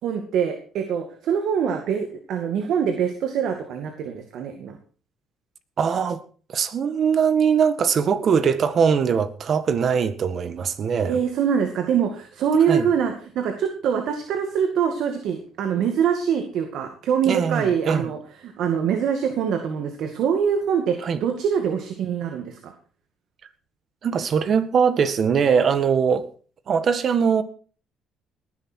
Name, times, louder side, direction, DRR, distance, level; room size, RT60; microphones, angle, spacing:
voice 1, 0.0-4.8 11.0-22.7, right 7 dB, 70° right, 2.3 m, -24 dB
voice 2, 5.8-6.2 6.5-11.2 12.7-12.9 17.3-18.1 21.0-21.2 24.0-26.3 26.7-27.4, right 6 dB, 45° right, 1.7 m, -21 dB
19.0 x 11.0 x 4.6 m
cardioid pair, 110°, 0 cm